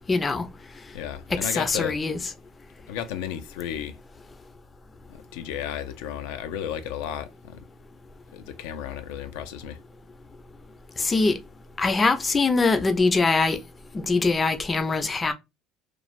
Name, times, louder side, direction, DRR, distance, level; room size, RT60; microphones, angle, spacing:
voice 1, 0.1-0.5 1.4-2.2 11.0-11.4 11.8-13.6 13.9-15.3, left 3 dB, 20° left, 0.5 m, -22 dB
voice 2, 0.9-2.0 2.9-4.0 5.1-7.6 8.3-9.8, left 9 dB, 90° left, 0.4 m, -33 dB
3.1 x 2.2 x 2.5 m
cardioid pair, 125°, 0 cm